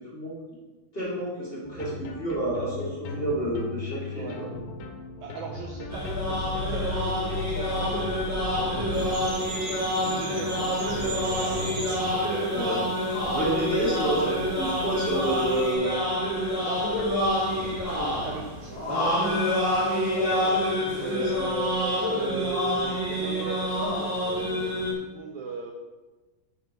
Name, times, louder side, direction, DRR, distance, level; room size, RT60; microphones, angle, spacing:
voice 1, 0.9-4.3 12.5-12.8 13.3-15.9 20.9-21.5, right 1 dB, 15° left, -8 dB, 2.8 m, -29 dB
sound 1, 1.6-12.8, left 3 dB, 80° left, 2.9 m, -36 dB
voice 2, 5.2-9.6 10.1-12.4 13.6-13.9 16.6-20.6 21.0-25.7, right 5 dB, 90° right, 1 dB, 1.6 m, -38 dB
sound 2, 5.9-24.9, left 1 dB, 5° right, 1.5 m, -27 dB
sound 3, 8.9-15.7, right 3 dB, 60° right, 3.5 m, -42 dB
7.8 x 6.1 x 5.6 m, 1.2 s
omnidirectional pair, 4.3 m